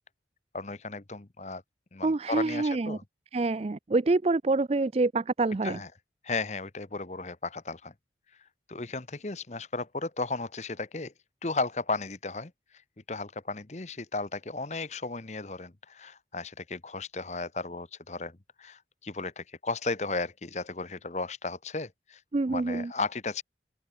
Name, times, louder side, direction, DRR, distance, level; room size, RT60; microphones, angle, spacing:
voice 1, 0.5-1.6 1.9-3.0 5.6-5.9 6.2-7.9 8.7-11.1 11.4-12.5 13.1-22.2 22.5-23.4, left 3 dB, 40° left, 1.0 m, -35 dB
voice 2, 2.0-3.0 3.3-5.8 22.3-22.9, right 3 dB, 35° right, 0.4 m, -26 dB
open air
head